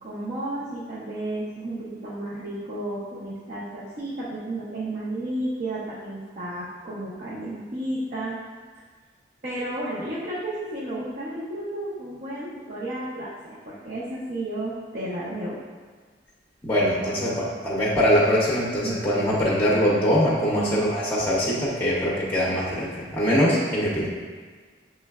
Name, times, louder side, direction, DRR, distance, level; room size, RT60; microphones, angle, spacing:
voice 1, 0.0-8.3 9.4-15.6 18.8-18.9 20.5-20.8, right 1 dB, 50° right, -8 dB, 0.7 m, -32 dB
voice 2, 16.6-24.1, equal, 10° left, -6 dB, 0.7 m, -22 dB
6.1 x 3.2 x 2.3 m, 1.5 s
head